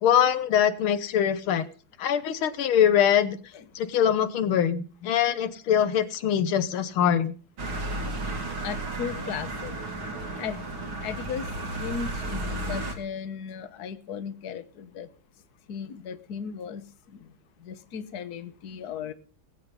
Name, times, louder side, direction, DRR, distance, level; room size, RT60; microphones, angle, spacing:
voice 1, 0.0-1.7 2.0-3.4 3.8-7.4, left 9 dB, 85° left, 12 dB, 1.8 m, -23 dB
sound 1, 7.6-12.9, right 2 dB, 75° right, 3.2 m, -33 dB
voice 2, 8.6-9.7 10.0-10.6 11.0-11.5 11.8-15.1 15.7-17.3 17.6-19.1, left 7 dB, 55° left, 12 dB, 1.5 m, -36 dB
20.5 x 8.0 x 5.4 m, 0.39 s
omnidirectional pair, 2.2 m